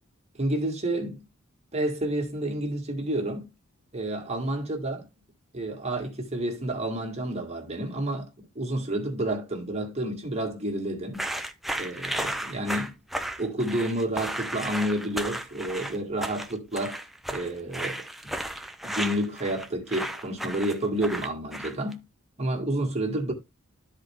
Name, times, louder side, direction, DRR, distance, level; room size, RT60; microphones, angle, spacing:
voice 1, 0.4-1.2 1.7-3.5 3.9-5.1 5.5-8.3 8.6-11.2 11.8-12.9 13.4-17.0 17.3-18.3 18.8-22.0 22.4-23.3, right 1 dB, 30° right, 1.9 m, -30 dB
sound 1, 11.1-21.9, right 1 dB, ahead, 0.5 m, -34 dB
12.5 x 4.3 x 3.6 m
head